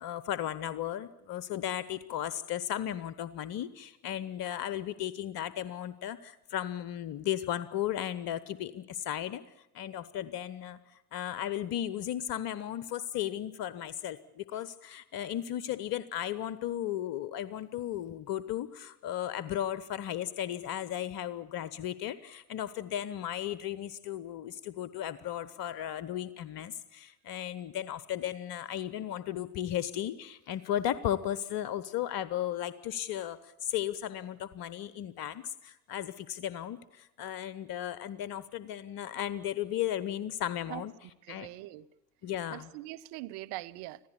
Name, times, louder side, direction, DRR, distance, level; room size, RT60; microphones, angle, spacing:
voice 1, 0.0-9.4 9.7-10.8 11.1-40.9 41.3-41.5 42.2-42.7, left 11 dB, 50° left, 0.9 m, -35 dB
voice 2, 41.2-41.9 42.5-44.0, right 18 dB, 60° right, 0.9 m, -42 dB
25.5 x 15.5 x 8.6 m
figure-of-eight pair, 50°, 46 cm